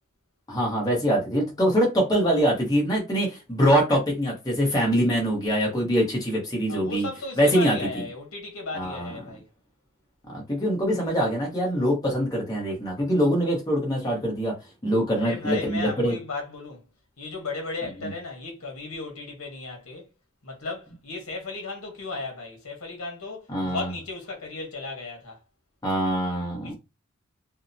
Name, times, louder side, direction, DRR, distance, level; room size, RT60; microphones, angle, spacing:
voice 1, 0.5-7.1 7.4-7.8 8.7-9.1 10.3-14.6 14.8-16.1 18.0-18.1 23.5-23.9 25.8-26.7, equal, 15° left, 0.8 m, -24 dB
voice 2, 6.7-9.5 15.1-16.8 17.2-20.1 20.4-25.4 26.6-26.7, left 3 dB, 75° left, 0.9 m, -35 dB
2.7 x 2.0 x 2.5 m
head